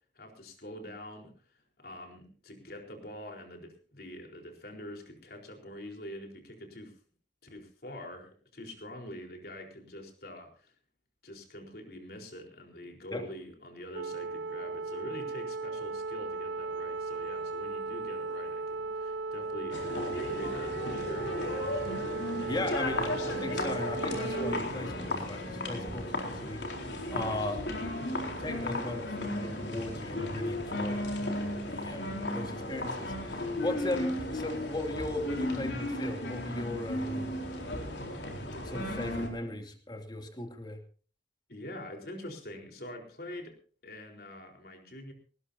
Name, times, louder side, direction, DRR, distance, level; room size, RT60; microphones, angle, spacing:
voice 1, 0.1-7.0 7.4-10.7 11.2-21.8 41.5-43.6 43.8-45.1, left 1 dB, 60° left, 3 dB, 4.3 m, -45 dB
sound 1, 13.9-24.6, right 3 dB, 75° right, 0.8 m, -36 dB
sound 2, 19.7-39.3, left 1 dB, 85° left, 4.1 m, -35 dB
voice 2, 22.5-26.6 27.1-27.6 28.4-31.1 31.7-37.3 38.6-40.8, left 1 dB, 25° left, 4 dB, 2.7 m, -37 dB
19.5 x 19.0 x 2.8 m, 0.39 s
head